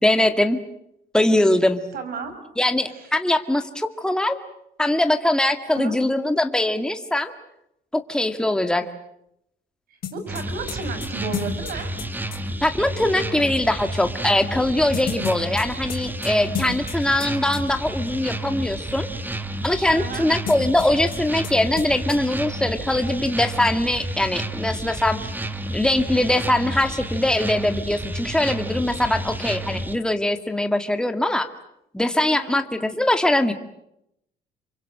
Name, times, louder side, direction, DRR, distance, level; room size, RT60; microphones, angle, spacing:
voice 1, 0.0-0.6 1.1-1.8 2.6-4.4 4.8-7.3 7.9-8.9 12.6-19.1 19.6-25.2 25.7-31.5 31.9-33.5, left 1 dB, 5° left, 7 dB, 2.0 m, -22 dB
voice 2, 1.9-2.4 2.9-3.1 5.7-6.0 9.9-11.9 19.9-20.3 32.2-32.6, right 4 dB, 60° right, 9 dB, 5.9 m, -33 dB
sound 1, 10.0-12.4 14.9-17.3 17.5-17.6 20.5-21.2 21.4-21.5 21.8-22.2, left 7 dB, 55° left, 5.0 m, -32 dB
sound 2, 10.3-30.0, right 1 dB, 10° right, 1.8 m, -31 dB
28.0 x 24.5 x 7.6 m, 0.79 s
cardioid pair, 110°, 17 cm